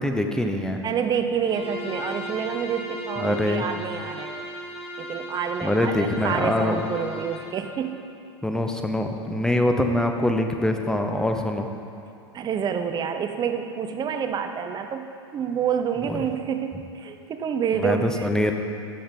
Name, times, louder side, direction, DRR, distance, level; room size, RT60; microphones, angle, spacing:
voice 1, 0.0-0.8 3.2-3.6 5.6-6.8 8.4-11.7 16.1-16.2 17.7-18.5, left 1 dB, 5° left, 4 dB, 0.8 m, -24 dB
voice 2, 0.8-4.4 5.0-8.0 9.5-9.6 12.3-18.4, right 7 dB, 30° right, 7 dB, 0.8 m, -28 dB
Bowed string instrument, 1.4-7.6, equal, 40° left, 1.8 m, -36 dB
12.0 x 6.3 x 5.3 m, 2.6 s
hypercardioid pair, 90°, 15 cm